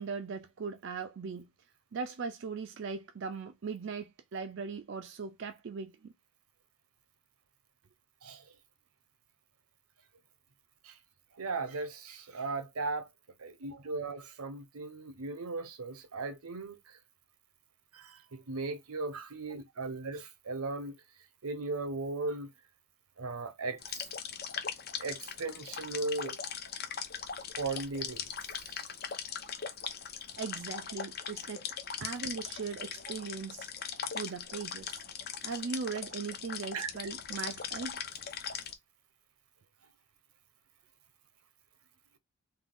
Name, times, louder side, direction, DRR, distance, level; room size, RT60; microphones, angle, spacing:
voice 1, 0.0-1.5 1.9-6.1 13.7-13.8 30.4-31.6 32.0-33.7 34.1-35.0 35.4-38.0, right 5 dB, 55° right, 0.4 m, -39 dB
voice 2, 11.4-13.1 13.4-16.8 17.9-20.9 21.4-22.5 23.2-23.8 25.0-26.4 27.6-28.3 28.6-28.8 36.7-36.9, right 3 dB, 85° right, 0.9 m, -37 dB
sound 1, 23.8-38.7, left 7 dB, 45° left, 0.7 m, -40 dB
3.6 x 2.8 x 3.8 m
head